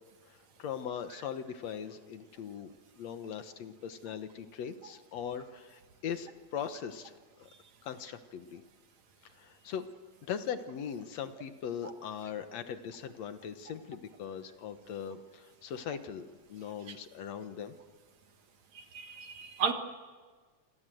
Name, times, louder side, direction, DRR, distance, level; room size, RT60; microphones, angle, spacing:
voice 1, 0.6-2.7 3.0-7.1 7.4-7.5 7.8-8.6 9.4-9.9 10.2-17.8, left 8 dB, 65° left, 9 dB, 2.3 m, -40 dB
voice 2, 18.7-19.7, right 6 dB, 70° right, 6 dB, 3.2 m, -33 dB
27.5 x 26.5 x 7.8 m, 1.5 s
omnidirectional pair, 3.3 m